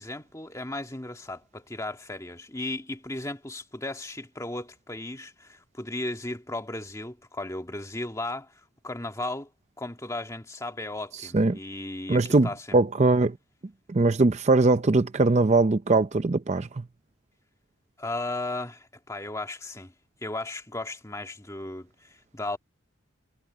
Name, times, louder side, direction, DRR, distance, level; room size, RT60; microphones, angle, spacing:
voice 1, 0.0-9.5 9.8-12.8 18.0-19.9 20.2-22.6, left 2 dB, 15° left, 1.7 m, -35 dB
voice 2, 12.1-13.3 13.9-16.7, right 3 dB, 30° right, 0.5 m, -21 dB
head